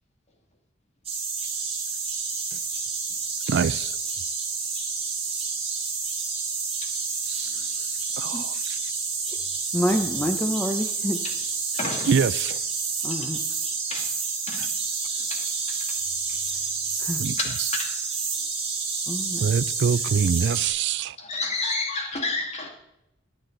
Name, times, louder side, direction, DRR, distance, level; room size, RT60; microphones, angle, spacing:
sound 1, 1.0-20.7, right 5 dB, 30° right, 3.7 m, -29 dB
voice 1, 3.5-3.9 7.3-7.5 8.2-8.8 12.1-12.6 17.2-17.4 19.4-21.2, right 6 dB, 65° right, 0.4 m, -25 dB
voice 2, 9.7-11.2 13.0-13.4 17.0-17.2 19.1-19.4, equal, 10° left, 0.7 m, -27 dB
voice 3, 11.7-12.2 13.9-14.2 14.5-14.7 15.1-15.8 17.3-17.9 21.2-22.7, left 3 dB, 35° left, 2.3 m, -31 dB
13.5 x 10.0 x 3.9 m
head